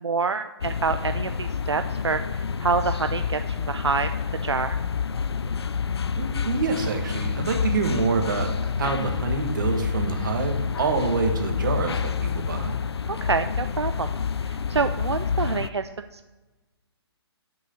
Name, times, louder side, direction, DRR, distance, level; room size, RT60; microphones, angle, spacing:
voice 1, 0.0-2.2 2.6-4.1 4.4-4.8 13.2-14.1 14.4-16.3, right 5 dB, 80° right, 9 dB, 0.4 m, -27 dB
sound 1, 0.6-15.7, left 6 dB, 70° left, 0.4 m, -28 dB
voice 2, 6.2-8.5 8.8-12.7, right 4 dB, 50° right, 4 dB, 1.4 m, -26 dB
6.6 x 5.4 x 6.3 m, 1.2 s
figure-of-eight pair, 130°, 14 cm